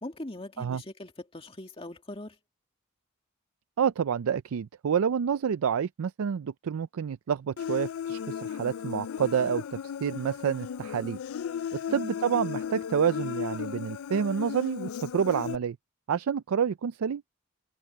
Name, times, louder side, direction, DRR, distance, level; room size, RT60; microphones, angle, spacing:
voice 1, 0.0-2.4 11.9-12.2, left 1 dB, 25° left, 2.1 m, -41 dB
voice 2, 3.8-11.2 11.7-15.8 16.1-17.2, right 7 dB, 90° right, 0.4 m, -28 dB
Human voice, 7.6-15.6, left 8 dB, 85° left, 0.4 m, -35 dB
head